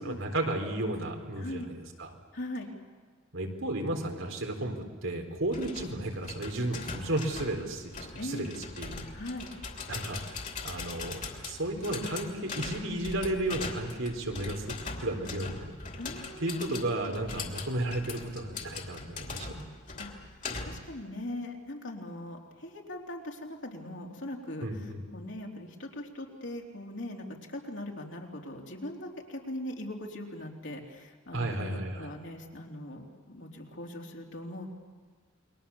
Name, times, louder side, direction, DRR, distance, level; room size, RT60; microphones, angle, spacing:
voice 1, 0.0-2.1 3.3-9.0 9.9-10.4 10.6-11.2 11.5-15.7 16.4-19.6 24.6-25.0 31.3-32.1, right 1 dB, 85° right, 3 dB, 4.0 m, -33 dB
voice 2, 1.4-1.7 2.3-2.7 8.2-8.6 9.1-9.5 16.0-16.8 20.0-34.7, left 1 dB, 65° left, 0 dB, 3.6 m, -40 dB
sound 1, 5.5-20.9, left 4 dB, 40° left, 2.9 m, -41 dB
29.0 x 23.0 x 7.1 m, 1.5 s
head